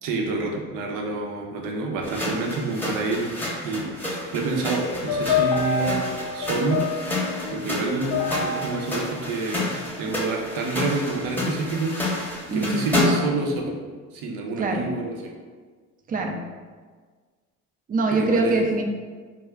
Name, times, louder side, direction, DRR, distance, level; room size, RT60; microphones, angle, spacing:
voice 1, 0.0-3.3 3.6-6.0 6.3-6.8 7.5-13.8 14.1-15.3 18.1-18.8, right 3 dB, 70° right, 0 dB, 0.6 m, -28 dB
sound 1, 2.0-13.4, left 1 dB, 5° left, 0.8 m, -30 dB
sound 2, 4.9-10.2, left 5 dB, 75° left, 0.6 m, -28 dB
voice 2, 12.5-12.9 14.6-14.8 16.1-16.4 17.9-18.8, right 2 dB, 25° right, 3 dB, 0.4 m, -23 dB
2.2 x 2.1 x 3.5 m, 1.5 s
supercardioid pair, 65°, 35 cm